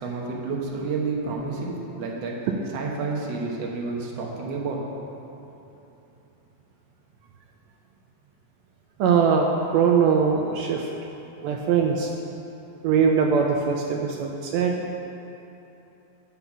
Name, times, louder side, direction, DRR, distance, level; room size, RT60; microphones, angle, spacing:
voice 1, 0.0-2.4 2.7-4.8, right 4 dB, 60° right, -2 dB, 2.0 m, -30 dB
voice 2, 9.0-10.9 11.4-12.1 12.8-15.0, right 6 dB, 80° right, 1 dB, 1.6 m, -21 dB
8.3 x 6.8 x 6.0 m, 3.0 s
omnidirectional pair, 3.6 m